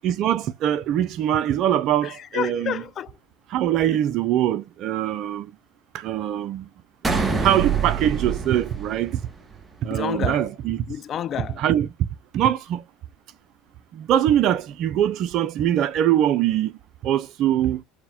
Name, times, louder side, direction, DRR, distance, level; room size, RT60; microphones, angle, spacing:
voice 1, 0.0-2.8 3.5-5.5 5.9-6.7 7.0-9.2 9.8-10.8 11.6-11.9 12.3-12.8 13.9-16.7 17.0-17.8, right 11 dB, 55° right, 0.4 m, -23 dB
voice 2, 2.0-3.2 9.9-10.5 10.9-11.6, left 9 dB, 40° left, 0.4 m, -30 dB
sound 1, 7.0-9.6, right 5 dB, 15° right, 0.9 m, -26 dB
4.7 x 2.1 x 3.5 m
supercardioid pair, 95°, 0 cm